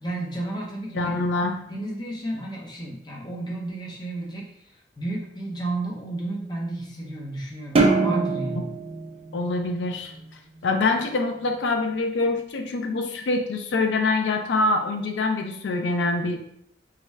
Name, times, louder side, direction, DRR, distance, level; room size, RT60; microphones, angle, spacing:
voice 1, 0.0-1.2 1.7-8.7, right 2 dB, 25° left, -2 dB, 0.6 m, -32 dB
voice 2, 1.0-1.6 9.3-10.1 10.6-16.4, left 3 dB, 85° left, 5 dB, 0.4 m, -25 dB
sound 1, 7.7-10.3, right 3 dB, 35° right, 0.3 m, -24 dB
3.6 x 2.2 x 3.1 m, 0.72 s
head